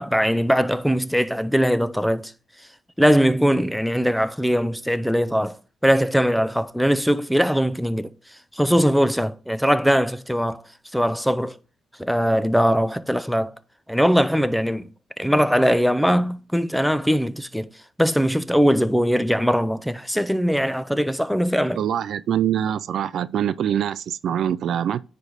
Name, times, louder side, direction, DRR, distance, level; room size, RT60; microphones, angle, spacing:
voice 1, 0.0-2.3 3.0-5.6 5.8-8.1 8.5-10.6 10.9-11.6 12.0-13.5 13.9-14.9 15.2-17.7 18.0-21.8, equal, ahead, 0.5 m, -21 dB
voice 2, 21.8-25.0, right 9 dB, 65° right, 0.3 m, -24 dB
9.7 x 3.3 x 3.9 m
cardioid pair, 90°, 0 cm